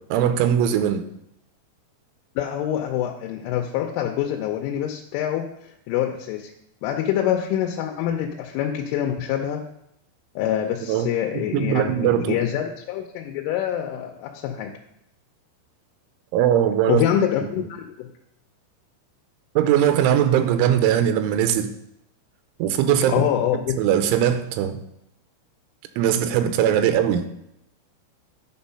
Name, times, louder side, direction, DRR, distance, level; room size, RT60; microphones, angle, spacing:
voice 1, 0.1-1.0 10.9-11.1 11.3-12.4 16.3-17.0 19.6-21.7 22.6-23.3 23.8-24.8 26.0-27.3, right 10 dB, 85° right, 8 dB, 3.1 m, -20 dB
voice 2, 2.4-6.5 6.8-9.7 10.4-14.8 16.9-18.1 23.1-23.8, left 10 dB, 90° left, 2 dB, 3.1 m, -25 dB
10.5 x 3.8 x 5.5 m, 0.80 s
omnidirectional pair, 5.5 m